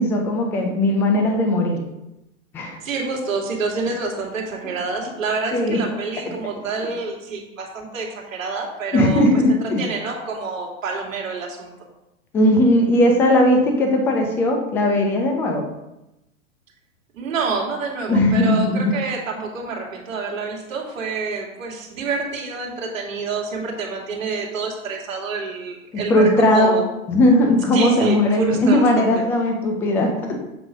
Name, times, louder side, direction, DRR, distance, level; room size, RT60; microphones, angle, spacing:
voice 1, 0.0-1.8 2.5-2.8 5.5-5.8 8.9-9.8 12.3-15.7 18.1-18.9 26.1-26.8 27.1-30.4, left 1 dB, 5° left, 3 dB, 0.4 m, -18 dB
voice 2, 2.8-11.7 17.1-26.9 27.7-29.2, right 4 dB, 70° right, 0 dB, 2.2 m, -28 dB
7.6 x 3.1 x 6.2 m, 0.91 s
hypercardioid pair, 130°, 40 cm